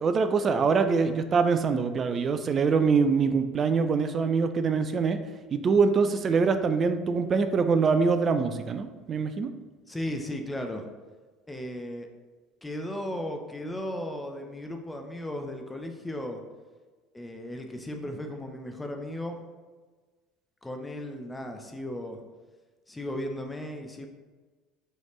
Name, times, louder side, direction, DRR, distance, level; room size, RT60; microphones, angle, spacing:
voice 1, 0.0-5.2 5.5-9.5, right 5 dB, 35° right, 9 dB, 0.3 m, -24 dB
voice 2, 9.9-10.9 11.5-12.1 12.6-16.4 17.1-19.4 20.6-22.2 22.9-24.1, left 1 dB, 10° left, 4 dB, 0.6 m, -36 dB
3.9 x 3.1 x 3.1 m, 1.4 s
figure-of-eight pair, 65°, 0 cm